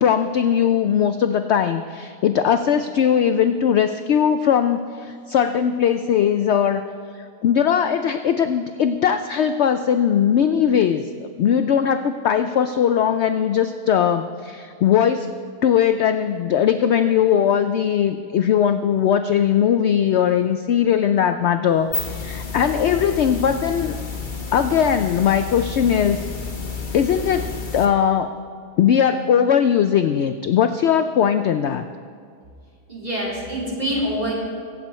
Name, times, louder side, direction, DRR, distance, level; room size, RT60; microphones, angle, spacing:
voice 1, 0.0-6.8 7.4-11.1 11.4-15.3 15.6-24.0 24.5-26.2 26.9-28.3 28.8-31.9, left 8 dB, 70° left, 9 dB, 0.6 m, -19 dB
sound 1, 21.7-27.8, left 4 dB, 35° left, 1.4 m, -31 dB
voice 2, 32.9-34.3, equal, 25° right, -5 dB, 3.6 m, -25 dB
23.5 x 8.4 x 4.3 m, 2.2 s
omnidirectional pair, 1.6 m